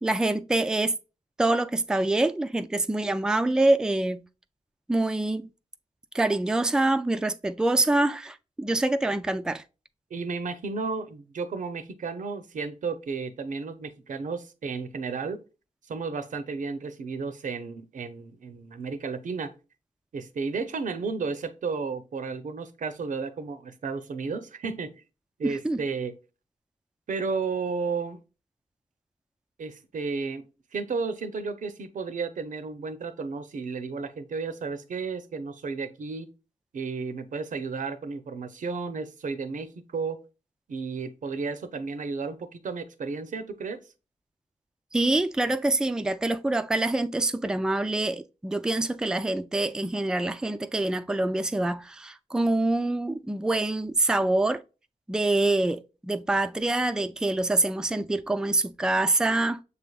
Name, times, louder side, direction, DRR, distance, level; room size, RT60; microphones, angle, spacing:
voice 1, 0.0-1.0 1.4-4.2 4.9-5.5 6.1-9.6 25.4-25.8 44.9-54.6 55.1-59.6, right 2 dB, 5° right, 0.3 m, -25 dB
voice 2, 10.1-15.4 15.9-19.5 20.1-24.9 25.4-26.1 27.1-28.2 29.6-30.5 30.7-36.3 36.7-40.2 40.7-43.8, right 4 dB, 85° right, 0.6 m, -33 dB
6.8 x 3.4 x 2.3 m
wide cardioid pair, 75°, 13 cm